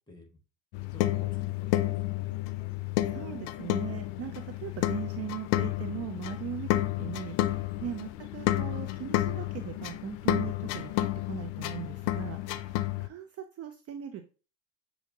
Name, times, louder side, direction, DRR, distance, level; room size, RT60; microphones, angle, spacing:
voice 1, 0.1-0.4 0.9-3.3 6.3-6.4 7.4-7.7, left 2 dB, 10° left, 4 dB, 1.6 m, -53 dB
sound 1, 0.7-13.1, left 15 dB, 75° left, 0.5 m, -31 dB
voice 2, 2.8-14.3, right 10 dB, 40° right, 7 dB, 0.6 m, -40 dB
6.7 x 2.8 x 2.7 m, 0.35 s
supercardioid pair, 90°, 38 cm